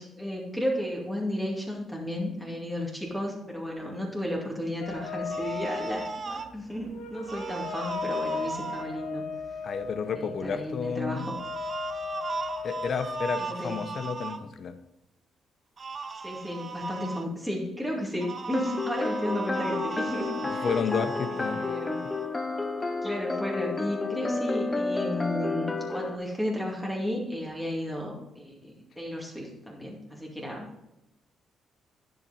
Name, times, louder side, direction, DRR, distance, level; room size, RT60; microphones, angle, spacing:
voice 1, 0.0-9.3 10.1-11.3 13.4-13.8 16.2-20.7 21.3-22.0 23.0-30.7, equal, ahead, -2 dB, 2.3 m, -33 dB
sound 1, 4.8-13.2, left 5 dB, 80° left, 1.5 m, -37 dB
sound 2, 5.3-6.5 7.2-8.8 11.2-14.4 15.8-17.2 18.2-22.3, right 4 dB, 40° right, 0.7 m, -37 dB
voice 2, 9.6-11.3 12.6-14.8 20.5-21.7, left 5 dB, 55° left, 10 dB, 0.9 m, -31 dB
sound 3, 18.5-26.2, left 3 dB, 20° left, 0.7 m, -31 dB
10.5 x 5.7 x 4.1 m, 0.90 s
cardioid pair, 90°, 0 cm